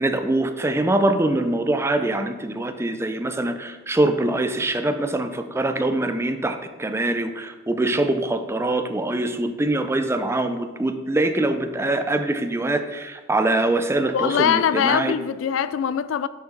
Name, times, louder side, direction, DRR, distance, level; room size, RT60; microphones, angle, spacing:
voice 1, 0.0-15.2, right 2 dB, 15° right, 0.4 m, -23 dB
voice 2, 14.1-16.3, left 8 dB, 85° left, 0.3 m, -22 dB
6.5 x 5.7 x 3.9 m
head